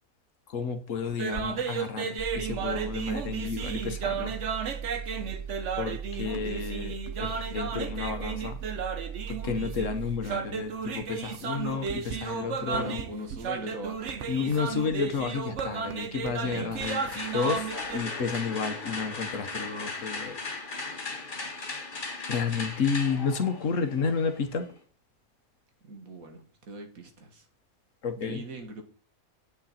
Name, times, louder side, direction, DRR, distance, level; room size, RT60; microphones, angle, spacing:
voice 1, 0.5-4.3 5.8-8.6 9.3-13.0 14.3-20.4 22.3-24.7 28.0-28.4, left 5 dB, 65° left, 1.3 m, -31 dB
sound 1, 1.1-18.0, right 6 dB, 60° right, 1.2 m, -34 dB
sound 2, 2.2-10.2, right 7 dB, 20° right, 0.9 m, -38 dB
voice 2, 12.7-14.4 16.4-16.8 25.8-27.5 28.2-28.8, right 1 dB, 75° right, 2.1 m, -40 dB
sound 3, 16.8-24.8, left 3 dB, 35° left, 1.6 m, -37 dB
8.9 x 6.3 x 4.2 m
omnidirectional pair, 1.5 m